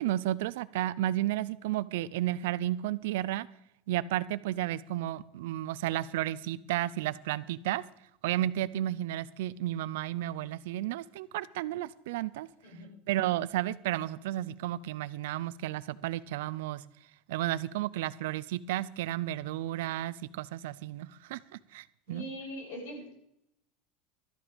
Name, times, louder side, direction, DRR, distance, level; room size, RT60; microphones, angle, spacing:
voice 1, 0.0-3.5 3.9-7.8 8.2-12.5 13.1-16.8 17.3-22.3, right 14 dB, 80° right, 17 dB, 0.5 m, -32 dB
voice 2, 22.1-23.1, equal, 80° left, 0 dB, 6.4 m, -41 dB
13.0 x 10.5 x 5.2 m, 0.76 s
cardioid pair, 180°, 0 cm